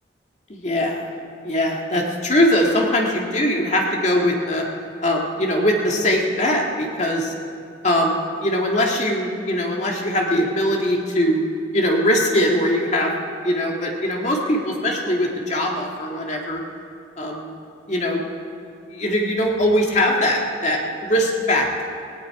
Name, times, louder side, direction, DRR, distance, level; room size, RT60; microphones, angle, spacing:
voice 1, 0.5-1.1 1.4-4.7 5.0-7.2 7.8-11.4 11.7-13.1 13.4-16.6 17.2-17.5 17.9-18.2 18.9-20.8 21.1-21.9, left 1 dB, 40° left, 0 dB, 2.0 m, -21 dB
17.5 x 17.5 x 4.8 m, 2.5 s
head